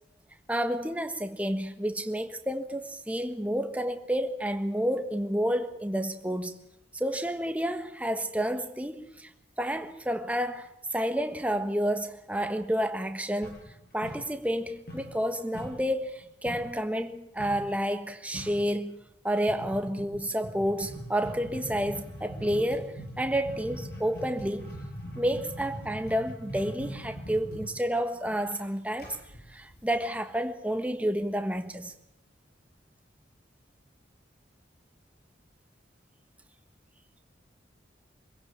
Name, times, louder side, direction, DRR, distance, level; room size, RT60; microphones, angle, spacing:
voice 1, 0.5-6.6 6.9-9.3 9.6-13.6 13.9-19.0 19.2-24.7 25.1-29.2 29.5-31.9, equal, 5° right, 1.4 m, -30 dB
sound 1, 13.4-14.6 14.9-16.8 17.4-17.7 18.0-18.1 18.3-18.7 19.5-30.3, equal, 55° left, 7.8 m, -41 dB
26.0 x 16.5 x 8.8 m
head